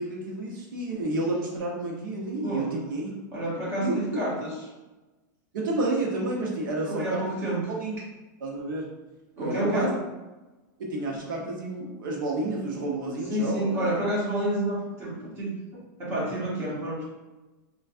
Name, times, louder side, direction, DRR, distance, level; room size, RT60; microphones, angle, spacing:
voice 1, 0.0-3.1 3.8-4.0 5.5-7.4 7.7-8.0 8.4-8.9 9.4-9.9 10.8-13.9, right 2 dB, 85° right, -2 dB, 0.9 m, -30 dB
voice 2, 2.4-2.8 3.3-4.6 6.9-7.7 9.4-9.9 13.3-15.5 16.0-17.1, right 1 dB, 20° right, -6 dB, 1.0 m, -29 dB
3.3 x 2.4 x 2.5 m, 1.1 s
supercardioid pair, 160°, 11 cm